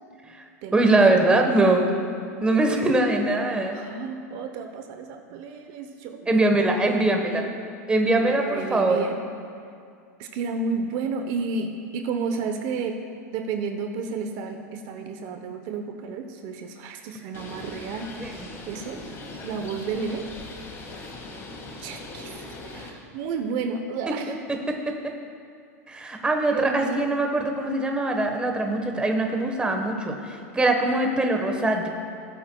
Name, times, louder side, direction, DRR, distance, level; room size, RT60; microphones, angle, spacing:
voice 1, 0.7-1.9 2.4-3.8 6.3-7.4 7.9-9.0 18.2-18.3 24.1-25.1 25.9-31.9, right 2 dB, 10° right, 3 dB, 1.2 m, -22 dB
voice 2, 2.7-3.2 3.7-7.4 8.0-9.2 10.2-13.0 13.3-19.0 19.4-20.3 21.8-24.4 26.5-27.1, right 4 dB, 50° right, 5 dB, 0.9 m, -32 dB
Bird, 17.3-22.9, left 2 dB, 30° left, 1.9 m, -40 dB
19.0 x 8.3 x 2.3 m, 2.4 s
hypercardioid pair, 115°, 9 cm